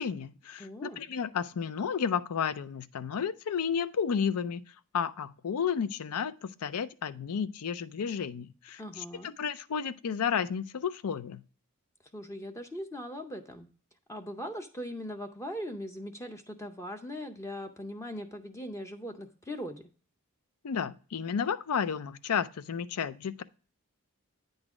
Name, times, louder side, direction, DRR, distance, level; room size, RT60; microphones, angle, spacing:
voice 1, 0.0-4.6 4.9-11.4 20.6-23.4, left 7 dB, 85° left, 0.5 m, -32 dB
voice 2, 0.6-1.0 8.8-9.3 12.1-13.7 14.1-19.8, equal, 15° left, 0.6 m, -40 dB
8.9 x 3.9 x 4.8 m
head